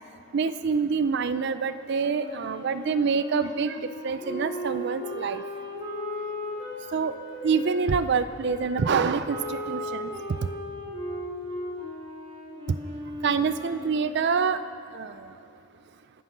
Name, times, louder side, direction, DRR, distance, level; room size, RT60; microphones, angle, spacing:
voice 1, 0.3-5.4 6.9-7.1 7.4-10.1 13.2-14.6 14.9-15.1, right 5 dB, 55° right, 12 dB, 0.4 m, -26 dB
Wind instrument woodwind instrument, 1.9-7.8 8.5-14.3, equal, 25° right, 3.4 m, -36 dB
24.5 x 9.6 x 6.0 m, 2.7 s
head